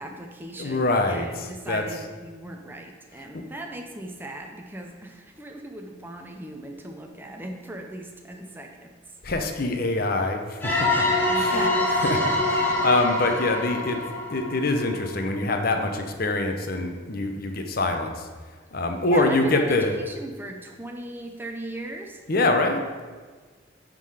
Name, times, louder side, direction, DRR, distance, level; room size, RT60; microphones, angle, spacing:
voice 1, 0.0-8.9 11.3-11.9 19.1-22.2, right 1 dB, 10° right, 2 dB, 0.5 m, -38 dB
voice 2, 0.6-2.0 3.3-3.4 9.2-14.0 14.3-18.3 18.7-20.0 22.3-22.8, left 2 dB, 50° left, 5 dB, 0.8 m, -25 dB
sound 1, 10.6-15.2, left 1 dB, 10° left, 1.0 m, -25 dB
9.8 x 3.8 x 4.8 m, 1.4 s
head